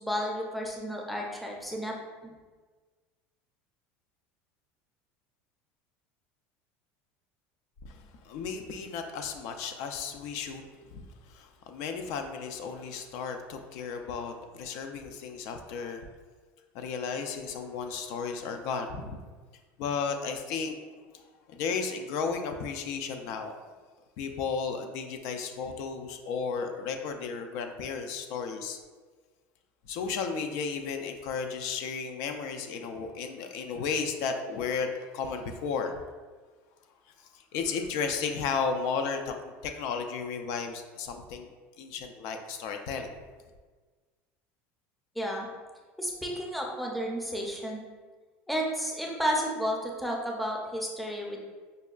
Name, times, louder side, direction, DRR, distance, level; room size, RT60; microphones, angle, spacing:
voice 1, 0.0-1.9 45.2-45.5 46.0-47.8 48.5-51.4, equal, ahead, -1 dB, 0.5 m, -32 dB
voice 2, 7.8-16.1 16.7-19.2 19.8-20.8 21.1-23.6 24.2-28.8 29.9-36.0 37.1-41.5 41.8-43.1, left 5 dB, 60° left, 5 dB, 0.3 m, -34 dB
5.2 x 2.2 x 2.3 m, 1.4 s
supercardioid pair, 140°, 6 cm